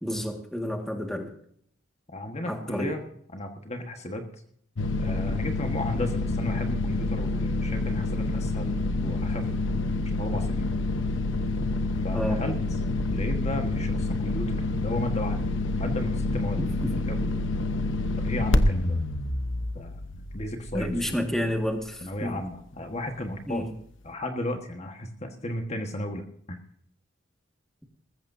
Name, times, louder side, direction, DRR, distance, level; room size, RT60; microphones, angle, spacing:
voice 1, 0.0-1.3 2.5-2.9 12.1-12.5 16.6-17.0 20.7-22.4 23.5-23.7, equal, ahead, 3 dB, 1.8 m, -30 dB
voice 2, 2.1-3.0 3.3-4.2 5.0-9.5 10.1-10.7 12.0-12.5 13.1-15.4 15.7-16.6 16.9-17.4 18.2-19.0 19.7-21.3 22.0-23.7 24.0-26.6, left 1 dB, 35° left, 4 dB, 1.5 m, -34 dB
sound 1, 4.8-21.1, left 2 dB, 80° left, 1.0 m, -27 dB
20.5 x 15.0 x 2.7 m, 0.66 s
head